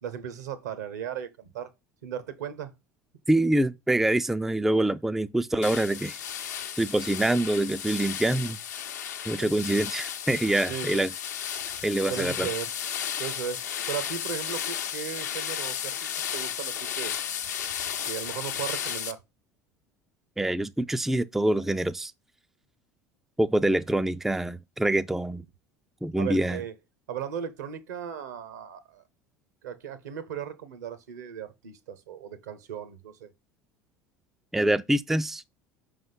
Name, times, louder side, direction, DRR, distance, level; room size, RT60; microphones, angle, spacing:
voice 1, 0.0-1.7 2.0-2.7 9.4-9.5 10.7-11.0 12.1-12.7 13.2-13.6 13.9-16.0 16.3-17.1 18.0-19.2 26.2-26.7 27.1-29.0 29.6-33.3, right 8 dB, 70° right, 0.9 m, -36 dB
voice 2, 3.3-6.2 6.8-8.6 9.3-11.1 11.8-12.5 20.4-22.1 23.4-25.4 26.0-26.6 34.5-35.4, right 1 dB, 5° right, 0.4 m, -25 dB
sound 1, 5.6-19.1, left 9 dB, 70° left, 0.8 m, -34 dB
5.4 x 3.6 x 5.4 m
figure-of-eight pair, 70°, 9 cm